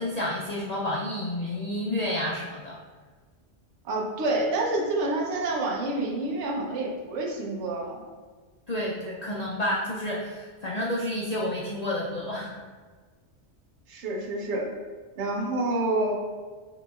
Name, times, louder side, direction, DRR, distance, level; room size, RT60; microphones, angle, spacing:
voice 1, 0.0-2.8 8.7-12.5, left 1 dB, 50° left, -5 dB, 0.5 m, -30 dB
voice 2, 3.8-8.0 13.9-14.7 15.2-16.1, right 2 dB, 70° right, -1 dB, 1.1 m, -28 dB
7.5 x 2.9 x 2.3 m, 1.4 s
omnidirectional pair, 1.2 m